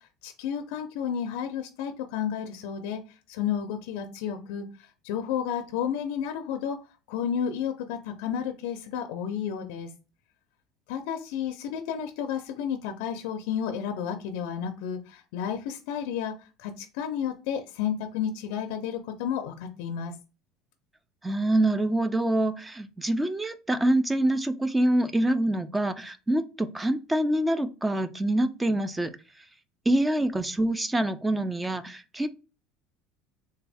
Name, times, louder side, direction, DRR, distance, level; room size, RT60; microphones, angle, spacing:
voice 1, 0.2-3.0 3.3-6.8 7.1-9.9 10.9-20.2, left 8 dB, 80° left, 5 dB, 0.4 m, -32 dB
voice 2, 21.2-29.1 29.9-32.3, right 1 dB, 10° right, 12 dB, 0.3 m, -25 dB
3.4 x 2.2 x 3.3 m, 0.32 s
cardioid pair, 150°, 0 cm